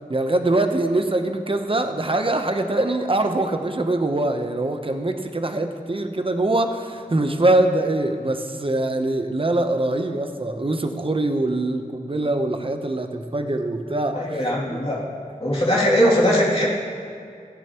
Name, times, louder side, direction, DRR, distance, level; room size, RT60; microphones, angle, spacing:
voice 1, 0.1-14.4 14.7-14.8, right 2 dB, 35° right, 6 dB, 0.8 m, -23 dB
voice 2, 14.1-15.1 15.4-16.7, equal, 40° left, -5 dB, 2.6 m, -20 dB
15.5 x 9.8 x 3.0 m, 2.3 s
wide cardioid pair, 60°, 16 cm